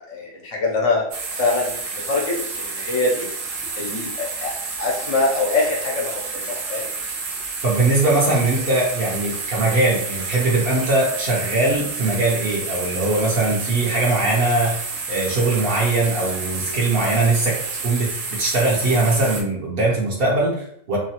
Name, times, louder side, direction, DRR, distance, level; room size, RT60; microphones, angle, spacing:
voice 1, 0.1-1.0 1.4-1.7 2.1-2.3 2.7-3.3 3.8-4.5 4.8-6.9, left 3 dB, 70° left, -1 dB, 1.0 m, -23 dB
sound 1, 1.1-19.4, right 4 dB, 85° right, 1.0 m, -30 dB
voice 2, 7.6-14.8 15.1-21.0, right 2 dB, 50° right, -3 dB, 0.9 m, -21 dB
2.9 x 2.3 x 2.8 m, 0.68 s
omnidirectional pair, 1.3 m